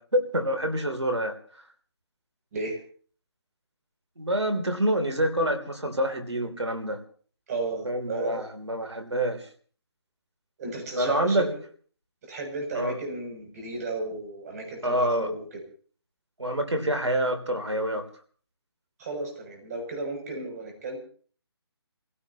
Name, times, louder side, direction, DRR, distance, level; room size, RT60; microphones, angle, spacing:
voice 1, 0.0-1.4 4.2-7.0 7.8-9.5 11.0-11.5 12.7-13.0 14.8-15.3 16.4-18.1, right 1 dB, 85° right, 7 dB, 3.1 m, -27 dB
voice 2, 7.5-8.4 10.6-11.5 12.3-15.4 19.0-21.0, right 3 dB, 35° right, 2 dB, 7.2 m, -33 dB
29.5 x 16.5 x 2.9 m, 0.44 s
figure-of-eight pair, 150°, 14 cm